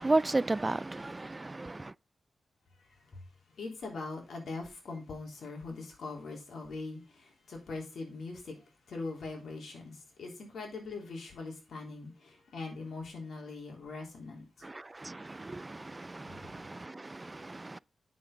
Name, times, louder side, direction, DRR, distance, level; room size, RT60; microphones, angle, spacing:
voice 1, 0.0-1.9 14.6-14.7 15.0-17.8, right 2 dB, 25° right, 0.3 m, -33 dB
voice 2, 2.9-3.3 3.5-8.6 8.9-14.7 16.3-16.5, left 3 dB, 85° left, 3.3 m, -42 dB
8.5 x 6.3 x 3.6 m
cardioid pair, 85°, 0 cm